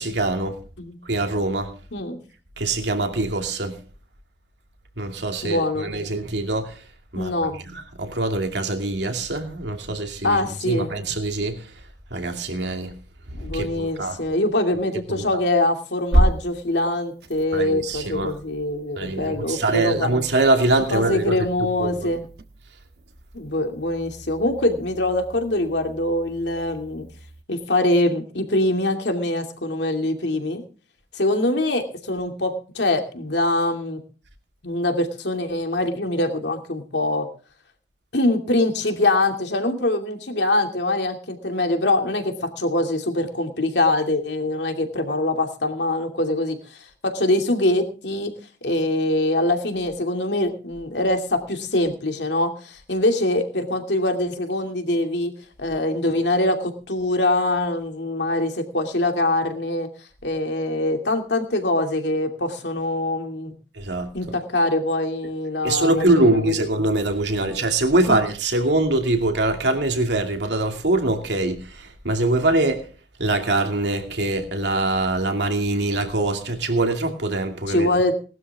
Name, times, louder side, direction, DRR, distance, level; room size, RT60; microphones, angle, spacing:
voice 1, 0.0-0.6 1.0-1.7 2.6-3.8 5.0-6.8 7.1-7.3 7.6-11.7 12.1-12.9 13.4-14.2 15.1-15.3 17.5-18.3 19.0-21.5 21.8-22.1 63.7-64.1 65.6-72.9 73.2-78.1, right 2 dB, 80° right, 2.6 m, -23 dB
voice 2, 5.4-5.9 7.1-7.6 10.2-10.9 13.3-20.1 20.9-22.2 23.3-27.0 27.5-30.6 31.1-34.0 34.6-37.3 38.1-48.3 48.6-55.3 55.6-59.9 60.2-63.5 64.1-66.5 67.4-67.5 68.0-68.2 77.7-78.1, left 1 dB, 80° left, 2.6 m, -23 dB
sound 1, 16.0-27.4, right 1 dB, 65° right, 1.2 m, -31 dB
19.5 x 12.5 x 3.6 m
head